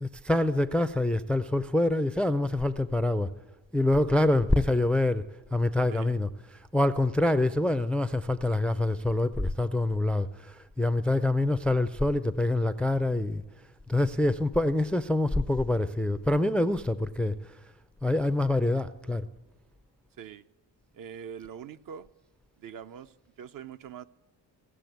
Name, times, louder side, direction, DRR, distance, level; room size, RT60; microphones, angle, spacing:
voice 1, 0.0-3.3 3.7-13.4 13.9-17.6 18.0-19.3, left 1 dB, 5° left, 0.4 m, -26 dB
voice 2, 20.9-22.1 22.6-24.0, right 8 dB, 55° right, 0.6 m, -43 dB
16.5 x 6.6 x 9.1 m
cardioid pair, 100°, 40 cm